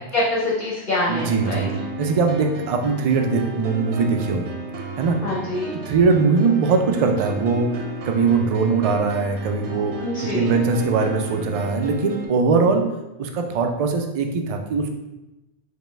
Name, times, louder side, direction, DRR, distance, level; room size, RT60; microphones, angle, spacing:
voice 1, 0.1-1.7 5.2-5.7 10.0-10.5, left 2 dB, 50° left, -4 dB, 0.8 m, -25 dB
voice 2, 1.1-4.5 5.0-5.2 5.9-10.1 10.3-12.9 13.2-14.9, right 4 dB, 70° right, 4 dB, 0.3 m, -21 dB
sound 1, 1.1-12.3, right 2 dB, 90° right, 0.9 m, -34 dB
5.2 x 2.2 x 3.2 m, 1.0 s
omnidirectional pair, 1.2 m